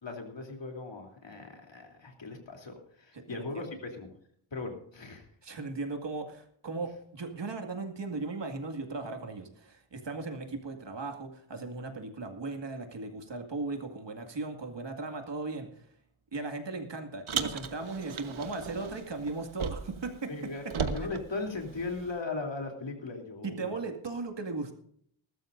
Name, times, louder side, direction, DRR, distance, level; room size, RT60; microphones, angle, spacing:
voice 1, 0.0-4.1 4.5-5.3 20.3-23.8, left 3 dB, 65° left, 2 dB, 3.3 m, -38 dB
voice 2, 3.1-3.6 5.4-15.7 16.3-20.5 23.4-24.7, right 3 dB, 60° right, 4 dB, 2.2 m, -37 dB
Car, 17.3-20.1 20.3-22.2, right 6 dB, 75° right, 1.3 m, -36 dB
20.0 x 13.0 x 2.6 m, 0.65 s
wide cardioid pair, 90°, 49 cm